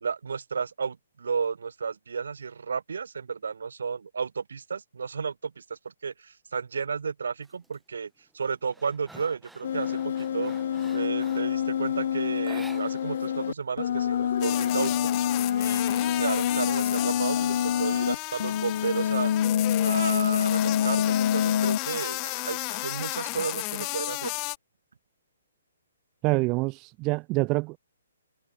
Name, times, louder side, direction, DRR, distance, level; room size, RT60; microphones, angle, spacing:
voice 1, 0.0-10.5 10.9-15.1 15.6-19.4 19.8-24.3, right 5 dB, 65° right, 1.1 m, -33 dB
sound 1, 7.4-7.8 8.2-11.6 12.4-13.3 13.6-13.7 14.1-15.0, right 2 dB, 5° right, 3.6 m, -49 dB
sound 2, 9.6-18.1 18.4-21.8, left 9 dB, 55° left, 0.5 m, -26 dB
sound 3, 14.4-24.6, left 34 dB, 30° left, 1.7 m, -33 dB
voice 2, 26.2-27.8, right 25 dB, 30° right, 0.6 m, -26 dB
figure-of-eight pair, 130°, 0 cm